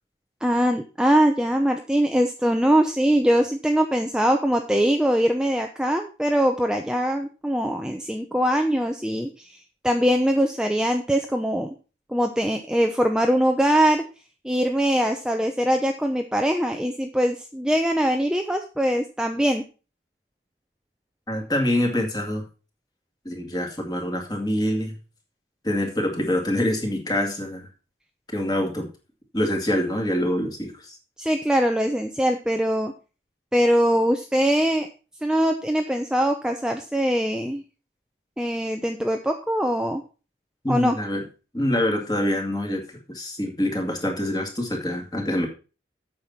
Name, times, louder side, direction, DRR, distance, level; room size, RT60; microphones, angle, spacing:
voice 1, 0.4-11.7 12.1-14.0 14.4-19.6 31.2-32.9 33.5-34.9 35.2-37.6 38.4-40.0 40.7-41.0, equal, 5° right, 4 dB, 0.6 m, -22 dB
voice 2, 21.3-22.5 23.2-24.9 25.6-27.7 28.3-28.9 29.3-31.0 40.6-41.2 41.5-42.8 43.1-45.5, left 1 dB, 20° left, 2 dB, 2.3 m, -25 dB
8.6 x 6.2 x 5.6 m, 0.34 s
head